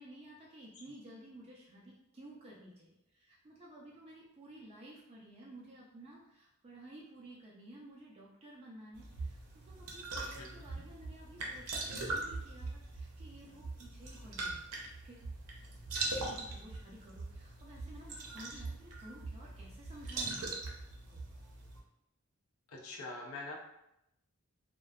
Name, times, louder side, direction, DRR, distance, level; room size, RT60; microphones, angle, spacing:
voice 1, 0.0-14.7 15.0-15.2 16.1-20.5 21.1-21.2, right 1 dB, 25° right, -4 dB, 0.3 m, -53 dB
sound 1, 8.9-21.8, right 3 dB, 90° right, 0.5 m, -41 dB
voice 2, 10.4-10.8 22.7-23.5, left 2 dB, 75° left, 0 dB, 0.5 m, -45 dB
2.5 x 2.1 x 2.3 m, 0.84 s
head